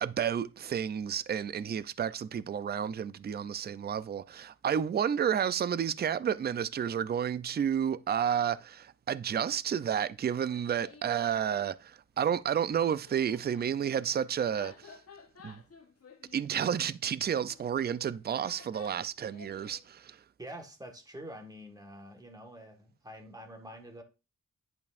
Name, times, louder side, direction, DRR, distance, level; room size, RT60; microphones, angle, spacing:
voice 1, 0.0-15.0 15.4-15.6 16.3-20.2, right 8 dB, 35° right, 0.4 m, -31 dB
Laughter, 10.4-11.3 12.5-19.8, left 5 dB, 50° left, 1.1 m, -54 dB
voice 2, 20.4-24.0, equal, 10° right, 1.4 m, -46 dB
10.5 x 5.2 x 2.5 m
wide cardioid pair, 105°, 31 cm